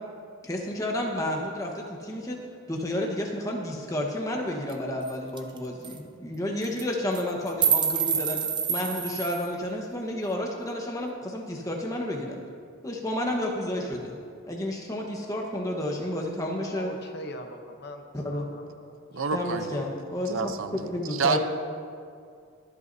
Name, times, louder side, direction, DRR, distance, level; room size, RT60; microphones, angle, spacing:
voice 1, 0.4-2.4 2.7-8.4 8.7-12.4 12.8-14.2 14.5-16.9 18.1-18.5 19.3-21.4, left 1 dB, 15° left, 0 dB, 1.2 m, -31 dB
sound 1, 4.7-4.8 5.1-5.2 5.4-5.6 5.8-6.0 6.6-6.8 7.1-9.5, right 7 dB, 20° right, 0.5 m, -27 dB
voice 2, 16.6-19.2, equal, 50° left, 5 dB, 0.9 m, -42 dB
voice 3, 19.1-19.8 20.3-21.4, right 5 dB, 75° right, 9 dB, 0.6 m, -28 dB
23.5 x 8.2 x 2.7 m, 2.3 s
head